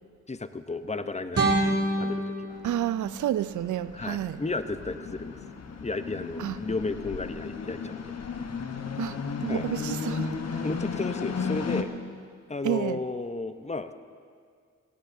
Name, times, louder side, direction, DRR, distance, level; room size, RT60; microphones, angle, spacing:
voice 1, 0.3-2.6 3.9-5.4 5.8-8.0 9.5-9.7 10.6-11.9 12.5-13.9, left 3 dB, 20° left, 0.8 m, -33 dB
sound 1, 1.3-4.4, right 2 dB, 50° right, 2.9 m, -29 dB
sound 2, 2.5-11.8, left 5 dB, 55° left, 1.1 m, -34 dB
voice 2, 2.6-4.4 6.4-6.6 9.0-10.7 12.6-13.0, right 12 dB, 70° right, 0.5 m, -30 dB
20.5 x 17.5 x 2.7 m
supercardioid pair, 45°, 31 cm